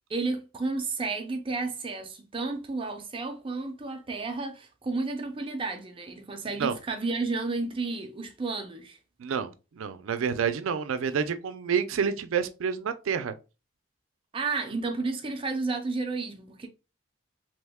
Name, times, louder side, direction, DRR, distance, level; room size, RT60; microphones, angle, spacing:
voice 1, 0.1-9.0 14.3-16.7, right 3 dB, 25° right, 0.4 m, -32 dB
voice 2, 9.2-13.3, right 7 dB, 85° right, 0.4 m, -28 dB
3.0 x 2.1 x 3.4 m
head